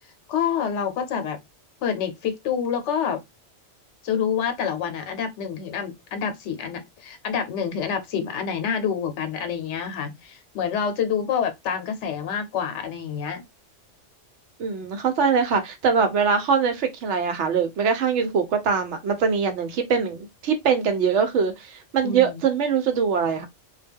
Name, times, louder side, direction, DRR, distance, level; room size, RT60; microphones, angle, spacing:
voice 1, 0.3-1.4 1.8-3.2 4.0-13.4 22.0-22.4, left 7 dB, 75° left, 1.0 m, -27 dB
voice 2, 14.6-23.5, right 6 dB, 80° right, 1.0 m, -22 dB
2.3 x 2.1 x 3.4 m
omnidirectional pair, 1.2 m